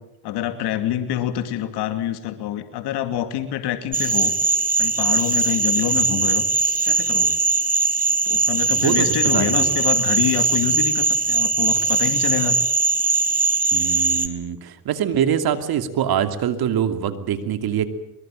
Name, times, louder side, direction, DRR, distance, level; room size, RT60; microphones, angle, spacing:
voice 1, 0.2-4.3 4.8-6.4 6.8-7.4 8.2-12.5, left 11 dB, 80° left, 8 dB, 2.7 m, -26 dB
sound 1, 3.9-14.3, right 4 dB, 20° right, 2.6 m, -20 dB
voice 2, 5.9-6.3 8.7-9.8 13.7-17.9, right 9 dB, 65° right, 9 dB, 2.7 m, -24 dB
23.5 x 22.0 x 9.1 m, 0.90 s
cardioid pair, 90°, 40 cm